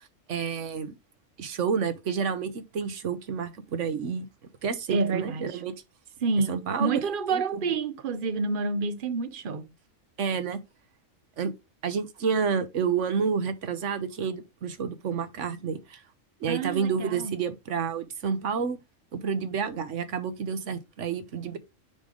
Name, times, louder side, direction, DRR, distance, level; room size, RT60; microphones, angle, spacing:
voice 1, 0.3-0.9 1.4-4.3 4.6-5.7 6.5-7.0 7.3-7.6 10.2-10.6 11.4-11.5 11.8-16.0 16.4-18.8 19.1-21.6, right 6 dB, 65° right, 1.3 m, -29 dB
voice 2, 4.9-5.6 6.2-9.7 16.5-17.4, right 4 dB, 45° right, 0.8 m, -29 dB
9.6 x 3.4 x 3.8 m
omnidirectional pair, 1.4 m